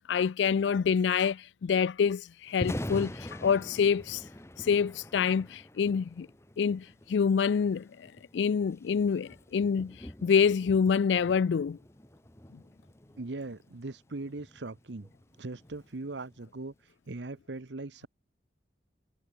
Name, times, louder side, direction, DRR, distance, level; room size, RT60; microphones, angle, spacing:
voice 1, 0.1-4.2 4.6-6.3 6.6-7.9 8.3-11.8, left 6 dB, 85° left, 0.4 m, -26 dB
Thunder, 2.5-16.6, equal, 15° left, 1.5 m, -45 dB
voice 2, 13.2-15.1 15.4-18.1, right 2 dB, 85° right, 1.0 m, -40 dB
head